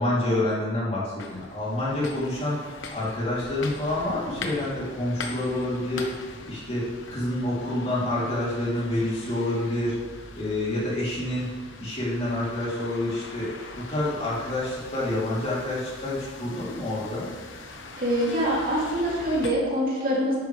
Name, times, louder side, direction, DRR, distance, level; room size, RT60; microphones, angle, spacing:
voice 1, 0.0-2.6 2.9-6.0 6.5-9.9 10.3-11.5 11.8-13.5 13.7-17.3, left 1 dB, 30° left, -7 dB, 3.2 m, -28 dB
sound 1, 1.2-19.5, left 3 dB, 70° left, 1.1 m, -41 dB
voice 2, 18.0-20.4, equal, 45° right, -5 dB, 2.9 m, -24 dB
11.5 x 9.3 x 3.4 m, 1.5 s
head